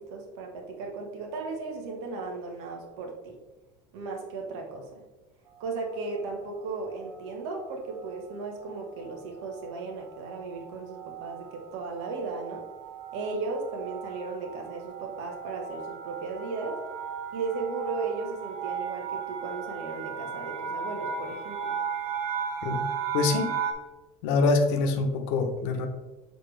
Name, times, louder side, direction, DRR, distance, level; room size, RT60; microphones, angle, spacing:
voice 1, 0.0-3.3 3.9-4.8 5.6-12.6 13.1-16.8 17.3-21.8, right 4 dB, 85° right, 1 dB, 1.5 m, -36 dB
sound 1, 5.6-6.1 6.8-7.2 7.5-7.7 8.0-23.7, right 6 dB, 55° right, 0.7 m, -36 dB
voice 2, 23.1-23.5 24.2-25.9, left 3 dB, 75° left, 5 dB, 1.0 m, -25 dB
6.7 x 4.3 x 3.4 m, 1.1 s
cardioid pair, 180°, 14 cm